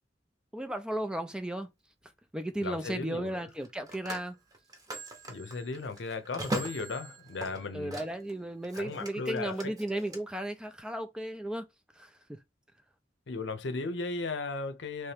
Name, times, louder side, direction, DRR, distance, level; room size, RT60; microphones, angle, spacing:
voice 1, 0.5-1.7 2.3-4.4 7.7-11.7 12.0-12.4, right 1 dB, 5° right, 0.3 m, -35 dB
Telephone, 1.3-1.5 3.5-8.3 8.6-10.2, right 2 dB, 20° right, 0.8 m, -40 dB
voice 2, 2.6-3.4 5.3-8.0 8.7-9.7 13.3-15.1, left 3 dB, 85° left, 0.6 m, -36 dB
3.2 x 2.8 x 3.3 m
head